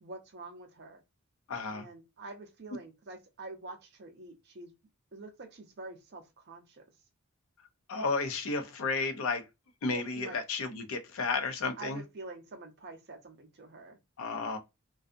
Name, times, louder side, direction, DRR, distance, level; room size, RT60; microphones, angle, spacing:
voice 1, 0.0-1.0 1.7-4.7 5.1-6.8 9.9-10.4 11.8-14.0, right 2 dB, 50° right, 0.5 m, -46 dB
voice 2, 1.5-1.9 7.9-9.5 9.8-12.0 14.2-14.6, left 4 dB, 70° left, 0.5 m, -32 dB
2.5 x 2.3 x 2.5 m
head